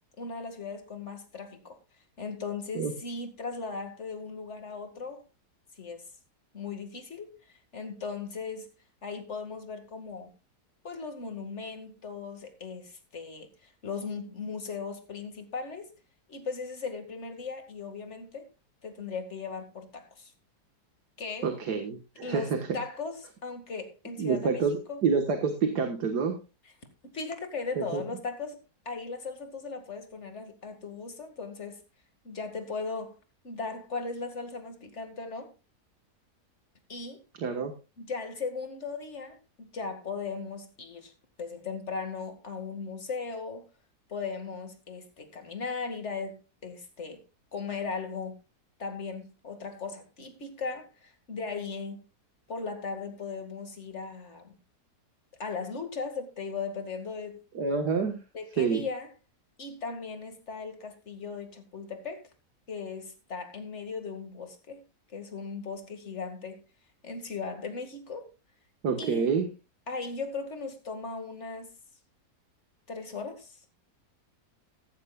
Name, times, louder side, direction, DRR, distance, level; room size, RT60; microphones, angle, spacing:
voice 1, 0.2-1.8 2.2-5.3 5.8-6.0 6.5-7.3 7.7-8.7 9.0-10.3 10.8-15.9 16.3-18.5 18.8-20.3 21.2-21.5 22.2-24.6 24.9-25.0 27.1-28.6 28.9-31.8 32.2-33.2 33.4-35.5 36.9-37.2 38.0-41.1 41.4-43.6 44.1-47.2 47.5-48.4 48.8-52.0 52.5-54.5 55.4-57.4 58.3-59.1 59.6-62.2 62.7-64.8 65.1-66.6 67.0-68.3 69.0-69.3 69.9-71.7 72.9-73.6, left 4 dB, 45° left, 2.4 m, -37 dB
voice 2, 21.4-22.8 24.2-26.4 27.8-28.0 37.4-37.7 57.6-58.2 58.6-58.8 68.8-69.5, right 5 dB, 85° right, 2.0 m, -28 dB
15.5 x 14.0 x 2.4 m
omnidirectional pair, 1.7 m